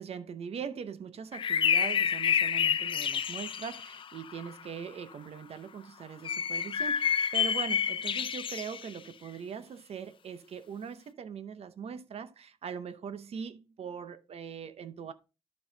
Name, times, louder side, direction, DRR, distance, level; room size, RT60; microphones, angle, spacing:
voice 1, 0.0-15.1, right 7 dB, 70° right, 0.7 m, -41 dB
sound 1, 1.3-4.5 6.2-9.0, left 8 dB, 50° left, 0.4 m, -29 dB
11.5 x 5.3 x 2.7 m
wide cardioid pair, 165°, 11 cm